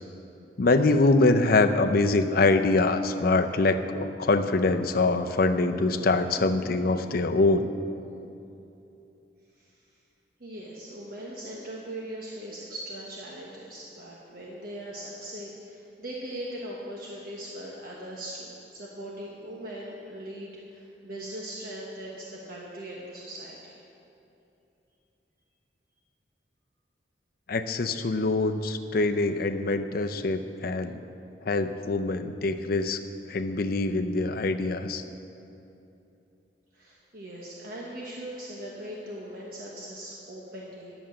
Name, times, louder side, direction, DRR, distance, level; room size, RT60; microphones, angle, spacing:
voice 1, 0.6-7.7 27.5-31.0 31.5-33.0 33.3-35.0, left 3 dB, 55° left, 8 dB, 0.6 m, -24 dB
voice 2, 10.4-23.8 36.7-40.9, right 1 dB, 55° right, -3 dB, 1.2 m, -40 dB
11.0 x 6.9 x 7.6 m, 2.8 s
head